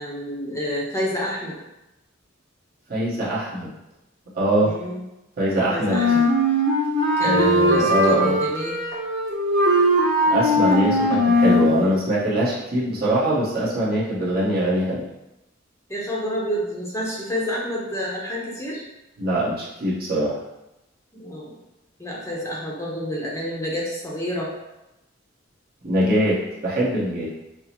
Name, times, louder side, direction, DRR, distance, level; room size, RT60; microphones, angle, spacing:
voice 1, 0.0-1.5 4.6-5.0 5.7-6.2 7.2-8.8 15.9-18.8 21.1-21.5 22.0-24.5, equal, 15° left, -4 dB, 0.7 m, -29 dB
voice 2, 2.9-3.7 4.3-4.7 5.4-6.0 7.2-8.4 10.3-15.0 19.2-20.4 25.8-27.3, right 1 dB, 50° right, -7 dB, 1.1 m, -22 dB
Wind instrument woodwind instrument, 5.9-11.7, left 1 dB, 85° right, 1.5 m, -20 dB
5.8 x 2.0 x 2.9 m, 0.94 s
head